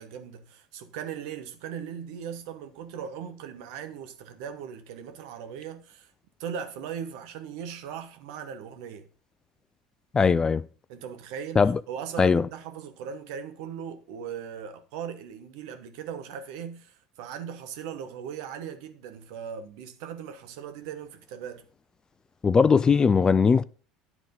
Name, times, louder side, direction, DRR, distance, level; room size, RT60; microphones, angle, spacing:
voice 1, 0.0-6.1 6.4-9.1 10.9-21.6, right 8 dB, 70° right, 1.0 m, -39 dB
voice 2, 10.1-10.6 11.6-11.8 12.2-12.4 22.4-23.6, left 5 dB, 25° left, 0.3 m, -20 dB
9.6 x 3.6 x 5.2 m
hypercardioid pair, 85°, 3 cm